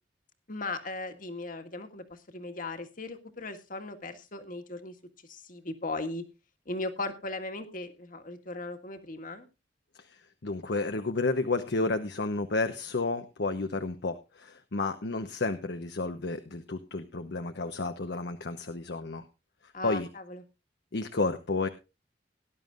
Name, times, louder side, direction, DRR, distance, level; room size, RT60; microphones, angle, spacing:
voice 1, 0.5-4.9 5.3-6.2 6.7-9.5 19.7-20.4, left 2 dB, 50° left, 7 dB, 1.8 m, -37 dB
voice 2, 10.0-19.2 19.6-20.1 20.9-21.7, left 3 dB, 70° left, 8 dB, 0.9 m, -31 dB
18.5 x 11.0 x 2.5 m, 0.27 s
head